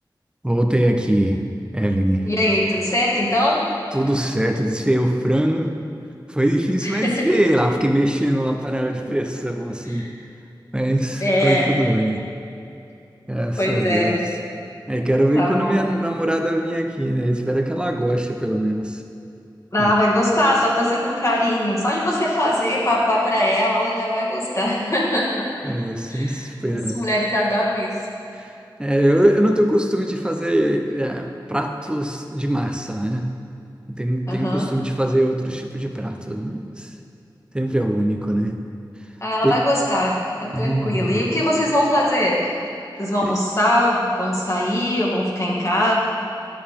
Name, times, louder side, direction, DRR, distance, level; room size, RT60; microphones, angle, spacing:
voice 1, 0.4-1.4 1.7-2.3 3.9-5.7 6.3-10.1 10.7-12.2 13.3-14.2 14.9-19.0 19.8-19.9 25.6-27.0 28.3-28.5 28.8-33.3 33.9-36.9 37.5-38.6 39.4-39.5 40.5-41.2 43.3-43.4, right 1 dB, 10° right, 4 dB, 0.8 m, -22 dB
voice 2, 2.2-3.6 6.8-7.3 9.9-10.1 11.2-11.8 13.6-14.2 15.3-15.8 19.7-25.7 26.1-28.0 34.3-34.7 39.2-42.5 43.0-45.9, left 1 dB, 35° left, -5 dB, 2.1 m, -21 dB
11.0 x 6.7 x 3.7 m, 2.7 s
wide cardioid pair, 55°, 8 cm